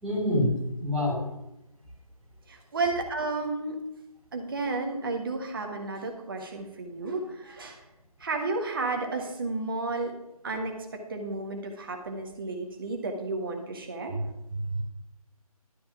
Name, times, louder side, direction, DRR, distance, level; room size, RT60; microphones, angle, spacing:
voice 1, 0.0-1.2 14.1-14.2, left 1 dB, 5° right, -12 dB, 1.8 m, -26 dB
voice 2, 2.5-3.8 4.3-7.8 8.2-10.1 10.4-10.8 11.1-14.1, right 3 dB, 35° right, 3 dB, 1.6 m, -32 dB
12.5 x 4.3 x 7.2 m, 0.90 s
figure-of-eight pair, 155°, 19 cm